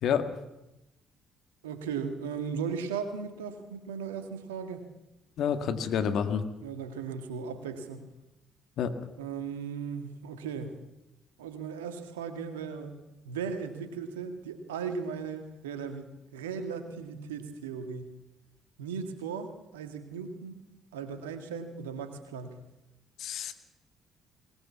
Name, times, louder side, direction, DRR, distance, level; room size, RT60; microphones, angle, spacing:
voice 1, 1.6-4.8 6.6-8.1 9.2-10.8 11.4-12.9 13.3-18.2 18.8-20.6 20.9-22.6, right 6 dB, 85° right, 8 dB, 1.8 m, -37 dB
voice 2, 5.4-6.4 8.8-8.9 23.2-23.5, left 7 dB, 65° left, 9 dB, 1.8 m, -28 dB
20.5 x 19.0 x 7.3 m, 0.92 s
hypercardioid pair, 50°, 0 cm